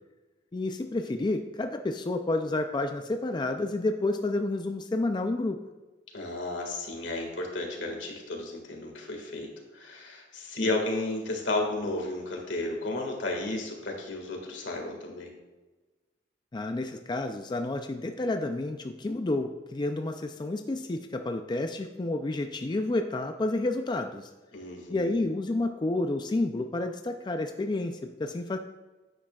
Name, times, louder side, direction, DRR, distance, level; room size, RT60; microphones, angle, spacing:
voice 1, 0.5-5.6 10.6-10.7 16.5-24.3 24.9-28.6, left 2 dB, 25° left, 6 dB, 0.4 m, -30 dB
voice 2, 6.1-15.3 24.5-25.2, left 2 dB, 85° left, 1 dB, 1.8 m, -33 dB
9.9 x 8.7 x 2.3 m, 1.2 s
head